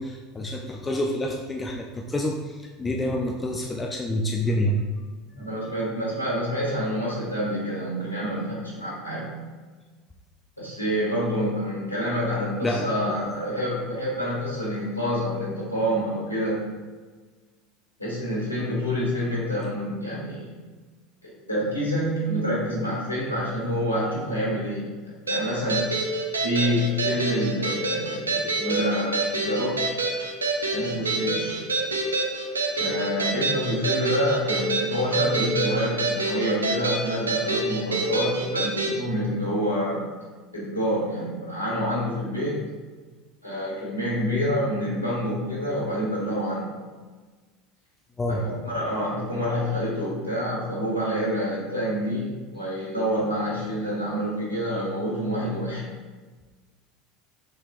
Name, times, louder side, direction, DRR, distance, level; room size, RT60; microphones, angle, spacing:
voice 1, 0.0-4.8 5.4-5.5 12.6-13.2 48.2-48.4, left 1 dB, 20° left, 1 dB, 0.4 m, -28 dB
voice 2, 5.4-9.3 10.6-16.7 18.0-20.6 21.2-25.9 26.4-29.8 30.7-31.6 32.8-40.1 40.5-42.6 43.4-46.8 48.3-55.8, equal, 90° left, -6 dB, 1.3 m, -27 dB
sound 1, 25.3-39.0, right 2 dB, 85° right, 0.5 m, -27 dB
6.1 x 3.3 x 2.5 m, 1.4 s
figure-of-eight pair, 75°, 0 cm